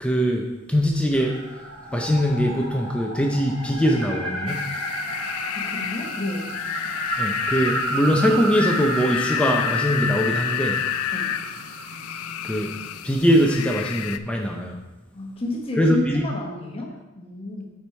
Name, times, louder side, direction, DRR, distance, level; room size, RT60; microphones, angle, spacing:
voice 1, 0.0-1.4 1.9-4.7 7.2-10.7 12.4-12.7 13.0-14.8 15.8-16.2, equal, 5° left, 0 dB, 0.5 m, -22 dB
sound 1, 1.1-12.6, right 2 dB, 85° right, 2.3 m, -32 dB
sound 2, 4.5-14.2, left 9 dB, 90° left, 0.4 m, -30 dB
voice 2, 5.5-6.5 11.1-11.3 15.1-17.7, left 2 dB, 25° left, -1 dB, 1.1 m, -31 dB
8.7 x 4.7 x 4.3 m, 1.0 s
head